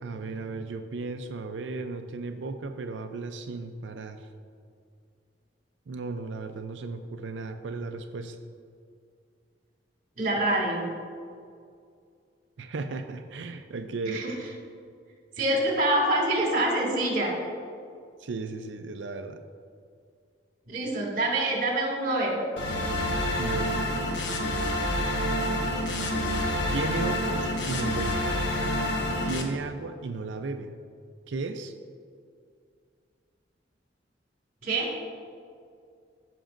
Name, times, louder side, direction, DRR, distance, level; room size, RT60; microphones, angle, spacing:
voice 1, 0.0-4.3 5.9-8.4 12.6-14.4 18.2-19.4 23.4-23.8 26.7-28.2 29.2-30.7 31.3-31.7, right 3 dB, 80° right, 7 dB, 0.5 m, -35 dB
voice 2, 10.2-10.9 14.1-14.3 15.4-17.3 20.7-22.4 34.6-34.9, right 1 dB, 45° right, -1 dB, 2.1 m, -25 dB
sound 1, 22.6-29.4, left 1 dB, 75° left, 1.0 m, -28 dB
14.0 x 6.0 x 2.5 m, 2.2 s
head